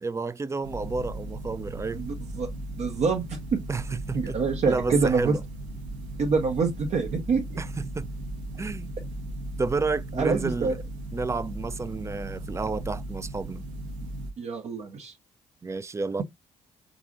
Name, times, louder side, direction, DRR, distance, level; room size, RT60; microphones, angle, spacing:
voice 1, 0.0-2.0 3.7-4.4 4.7-5.4 7.6-8.1 8.6-8.9 9.6-10.8 11.1-13.7 15.6-16.2, right 3 dB, 20° right, 0.3 m, -31 dB
sound 1, 0.6-14.3, right 1 dB, 75° right, 0.7 m, -37 dB
voice 2, 2.0-2.5 2.7-3.6 4.1-5.4 6.2-7.6 10.2-10.7 14.4-15.1, right 5 dB, 45° right, 0.7 m, -26 dB
4.7 x 2.5 x 2.5 m
figure-of-eight pair, 40°, 16 cm